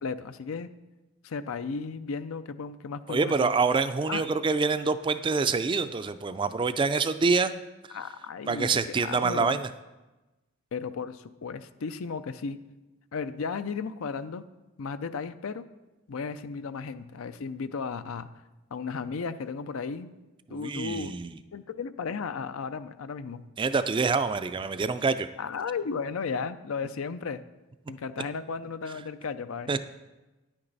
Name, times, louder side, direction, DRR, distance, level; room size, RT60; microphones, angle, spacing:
voice 1, 0.0-0.7 1.2-3.5 4.1-4.2 7.9-9.6 10.7-12.6 13.1-14.4 14.8-15.6 16.1-18.3 18.7-20.1 20.5-21.1 21.5-23.4 25.4-27.4 27.9-29.7, left 5 dB, 80° left, 12 dB, 0.5 m, -34 dB
voice 2, 3.1-7.6 8.5-9.7 20.5-21.3 23.6-25.3 29.7-29.8, right 4 dB, 25° right, 11 dB, 0.3 m, -26 dB
10.0 x 8.8 x 4.0 m, 1.1 s
head